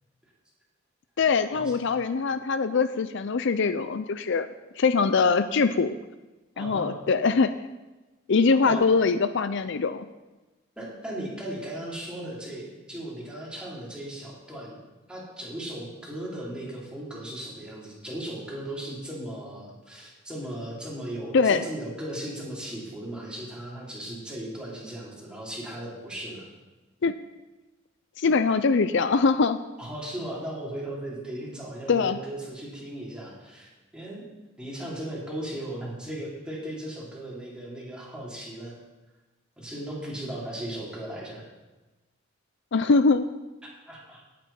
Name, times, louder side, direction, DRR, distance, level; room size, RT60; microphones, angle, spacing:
voice 1, 1.2-4.5 4.8-5.9 6.6-7.5 8.3-10.1 21.3-21.6 27.0-27.1 28.2-29.6 31.9-32.2 42.7-43.3, left 4 dB, 65° left, 12 dB, 0.5 m, -22 dB
voice 2, 6.6-6.9 8.6-8.9 10.8-14.8 15.1-26.5 29.8-34.2 34.6-38.8 39.6-41.5 43.9-44.2, right 1 dB, 5° right, -6 dB, 4.0 m, -37 dB
18.0 x 8.4 x 4.4 m, 1.1 s
head